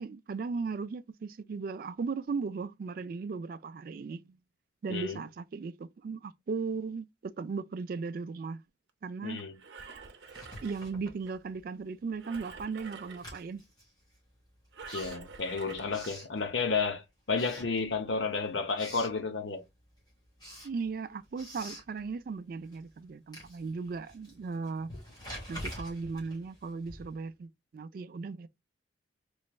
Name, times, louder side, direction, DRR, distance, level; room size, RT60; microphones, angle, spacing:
voice 1, 0.0-4.4 4.8-8.6 9.0-9.4 10.6-13.6 20.6-24.9 25.5-28.5, right 4 dB, 50° right, 0.3 m, -37 dB
voice 2, 9.2-9.5 14.9-19.6, left 4 dB, 80° left, 0.8 m, -32 dB
Engine, 9.4-11.3 12.2-13.4 14.7-16.1 16.8-16.9, right 5 dB, 70° right, 0.7 m, -48 dB
Writing, 10.2-11.8 12.1-16.9 17.3-18.3 18.5-19.2 19.6-27.3, equal, 20° left, 1.8 m, -48 dB
4.2 x 3.1 x 2.2 m
head